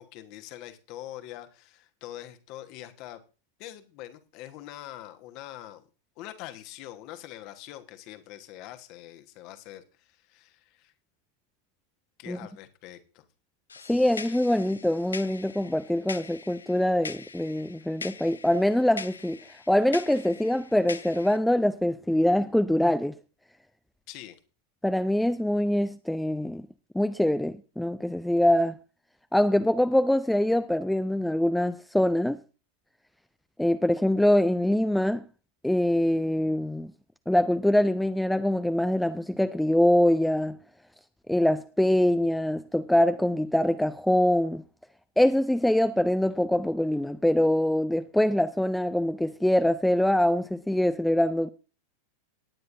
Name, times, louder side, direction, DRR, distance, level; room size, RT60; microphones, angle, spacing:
voice 1, 0.0-3.2 3.6-5.8 6.2-10.9 12.2-13.2 24.1-24.4, left 13 dB, 40° left, 1.3 m, -44 dB
sound 1, 13.7-21.4, left 5 dB, 75° left, 0.6 m, -42 dB
voice 2, 13.9-23.2 24.8-26.7 26.9-28.8 29.3-32.4 33.6-35.2 35.6-36.9 37.3-40.6 41.3-44.6 45.2-51.5, left 1 dB, 5° left, 0.5 m, -24 dB
18.5 x 9.5 x 2.7 m
figure-of-eight pair, 90°, 0 cm